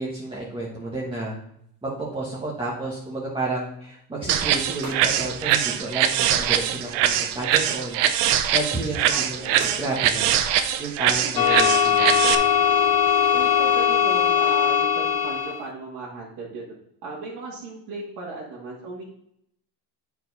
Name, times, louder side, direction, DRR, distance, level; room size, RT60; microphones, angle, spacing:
voice 1, 0.0-1.3 1.8-8.0 8.5-10.3 10.8-12.4, right 2 dB, 10° right, -5 dB, 1.4 m, -31 dB
sound 1, 2.1-2.3 2.7-2.8 3.0-3.3 3.6-3.7 4.8-6.4 6.7-8.9 9.5-11.0 11.2-11.8 12.4-12.5 12.9-13.1 13.5-13.7 14.0-14.2, right 3 dB, 45° right, 3.1 m, -44 dB
sound 2, 4.3-12.3, right 10 dB, 80° right, 0.8 m, -22 dB
voice 2, 9.1-9.7 11.2-11.5 13.3-16.6 17.0-19.0, right 3 dB, 60° right, -7 dB, 2.2 m, -36 dB
sound 3, 11.4-15.6, left 8 dB, 55° left, 0.8 m, -20 dB
8.7 x 4.7 x 4.2 m, 0.73 s
cardioid pair, 125°, 42 cm